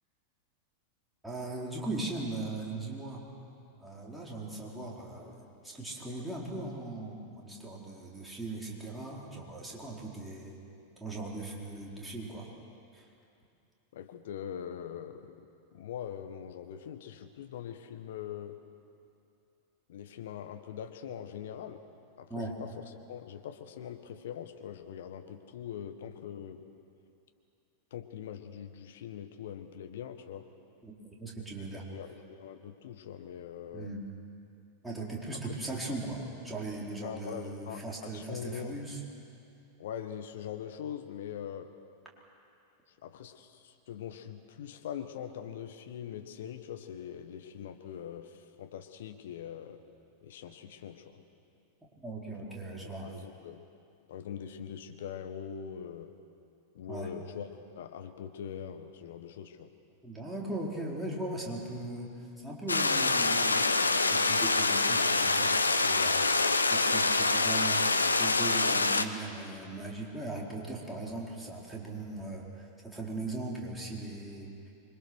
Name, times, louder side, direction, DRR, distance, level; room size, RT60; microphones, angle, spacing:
voice 1, 1.2-3.2 3.8-10.6 11.0-12.5 12.9-13.1 22.3-22.5 30.8-31.8 33.7-34.0 34.8-39.0 52.0-53.1 56.9-57.1 60.0-67.8 68.2-74.5, right 2 dB, 5° right, -4 dB, 4.5 m, -39 dB
voice 2, 13.9-18.6 19.9-21.8 22.2-26.6 27.9-30.5 31.9-33.9 35.4-35.6 37.0-38.8 39.8-41.7 42.9-49.8 50.2-51.2 52.5-53.6 54.1-56.1 56.7-59.7, left 9 dB, 60° left, 7 dB, 1.6 m, -42 dB
sound 1, 62.7-69.1, left 3 dB, 80° left, 0.9 m, -26 dB
25.5 x 23.5 x 6.4 m, 2.6 s
figure-of-eight pair, 90°, 0 cm